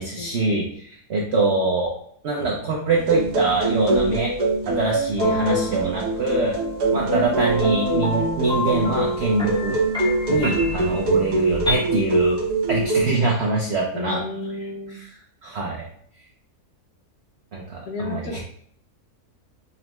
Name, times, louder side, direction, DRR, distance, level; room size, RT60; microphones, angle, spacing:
voice 1, 0.0-1.9 2.2-4.3 4.7-6.6 6.9-9.8 10.3-12.4 12.7-14.2 15.4-15.9 17.5-18.4, right 3 dB, 60° right, -2 dB, 0.7 m, -24 dB
sound 1, 3.0-13.0, right 2 dB, 85° right, 1.4 m, -23 dB
sound 2, 5.2-11.8, equal, 5° left, 0.4 m, -29 dB
voice 2, 7.0-7.3 13.9-15.0 17.9-18.4, left 3 dB, 90° left, 2 dB, 1.3 m, -32 dB
5.5 x 2.1 x 2.9 m, 0.63 s
omnidirectional pair, 1.6 m